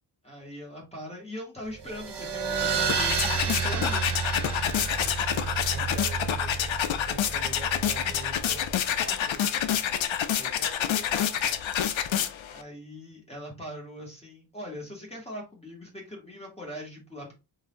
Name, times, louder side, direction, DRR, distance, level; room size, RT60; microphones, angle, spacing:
voice 1, 0.2-4.1 12.5-17.3, left 1 dB, 15° left, 1.4 m, -41 dB
sound 1, 1.8-8.8, right 6 dB, 65° right, 0.8 m, -31 dB
sound 2, 2.5-12.6, left 9 dB, 85° left, 0.6 m, -28 dB
voice 2, 5.7-9.5 10.3-11.1, right 1 dB, 20° right, 1.3 m, -45 dB
4.0 x 2.6 x 3.8 m
wide cardioid pair, 165°, 45 cm